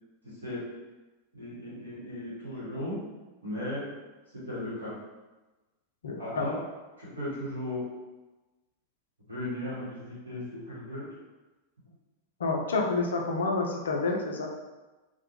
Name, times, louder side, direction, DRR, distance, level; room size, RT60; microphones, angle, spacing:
voice 1, 0.2-0.7 1.3-3.1 3.4-3.9 4.3-5.0 6.2-6.6 7.0-7.9 9.3-11.1, left 1 dB, 80° right, -8 dB, 1.0 m, -36 dB
voice 2, 6.0-6.5 12.4-14.5, left 3 dB, 65° left, 0 dB, 0.4 m, -29 dB
2.2 x 2.1 x 2.8 m, 1.2 s
figure-of-eight pair, 90°, 0 cm